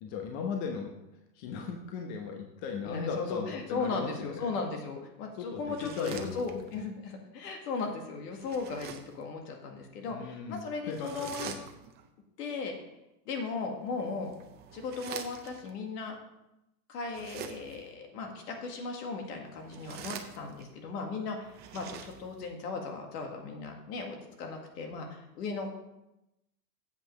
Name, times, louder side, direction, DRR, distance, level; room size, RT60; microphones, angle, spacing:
voice 1, 0.0-0.9 1.3-4.5 5.3-6.7 10.1-11.7, left 5 dB, 45° left, 2 dB, 1.1 m, -38 dB
voice 2, 2.8-11.5 12.4-12.7 13.3-14.3 14.7-16.2 16.9-25.7, left 4 dB, 70° left, 3 dB, 2.0 m, -37 dB
sound 1, 5.6-6.9 8.4-9.2 10.9-12.1 13.9-15.7 17.1-17.9 19.5-20.8 21.4-22.5, right 9 dB, 20° right, 0.5 m, -46 dB
8.1 x 5.2 x 6.1 m, 0.91 s
supercardioid pair, 135°, 49 cm